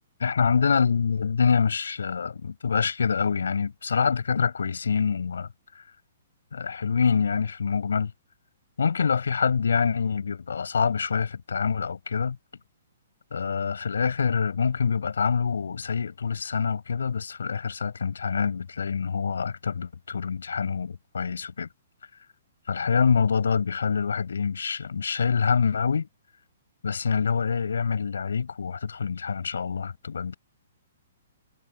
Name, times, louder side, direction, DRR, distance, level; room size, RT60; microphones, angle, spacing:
voice 1, 0.2-5.5 5.7-5.8 6.5-8.1 8.8-12.4 13.3-21.7 22.7-26.1 26.8-30.4, left 6 dB, 85° left, 7.8 m, -26 dB
hypercardioid pair, 140°, 0 cm